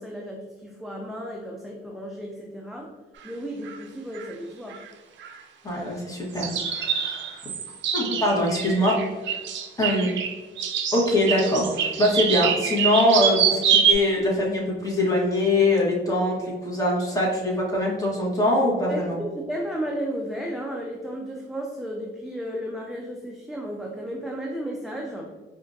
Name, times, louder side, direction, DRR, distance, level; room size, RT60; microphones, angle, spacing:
voice 1, 0.0-3.0 3.2-4.8 18.9-25.3, equal, ahead, -1 dB, 0.5 m, -33 dB
sound 1, 3.3-3.4 3.7-3.8 4.1-4.3 4.7-4.9 5.2-5.4 6.4-13.9, right 8 dB, 70° right, 0.5 m, -25 dB
voice 2, 5.6-7.5 7.9-9.0 9.8-10.1 10.9-19.2, left 1 dB, 15° left, -4 dB, 1.4 m, -23 dB
4.8 x 2.5 x 2.6 m, 1.3 s
cardioid pair, 90°, 20 cm